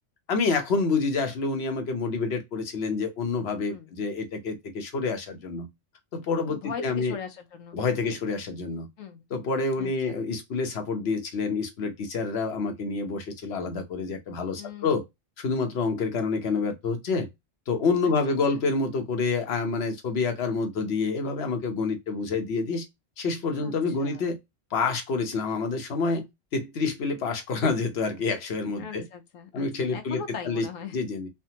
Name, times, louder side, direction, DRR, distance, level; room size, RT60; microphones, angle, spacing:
voice 1, 0.3-5.7 6.1-7.1 7.7-8.9 9.3-15.0 15.4-17.3 17.7-22.8 23.2-24.4 24.7-26.3 26.5-29.0 29.5-30.7 30.9-31.3, left 4 dB, 60° left, 1.0 m, -28 dB
voice 2, 6.5-8.2 9.0-9.2 9.8-9.9 14.6-15.0 18.0-18.1 18.5-18.6 23.6-24.3 28.8-31.0, left 7 dB, 90° left, 1.1 m, -40 dB
3.4 x 2.2 x 2.8 m
omnidirectional pair, 1.3 m